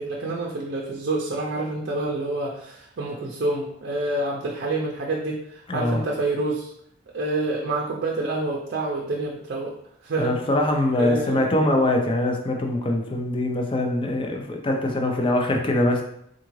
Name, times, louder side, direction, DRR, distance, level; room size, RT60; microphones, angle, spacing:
voice 1, 0.0-6.7 7.1-9.7 10.0-10.4 10.9-11.4, right 2 dB, 55° right, -1 dB, 0.5 m, -27 dB
voice 2, 5.7-6.0 10.2-16.0, left 1 dB, 25° left, 2 dB, 0.4 m, -23 dB
3.7 x 2.4 x 3.0 m, 0.71 s
head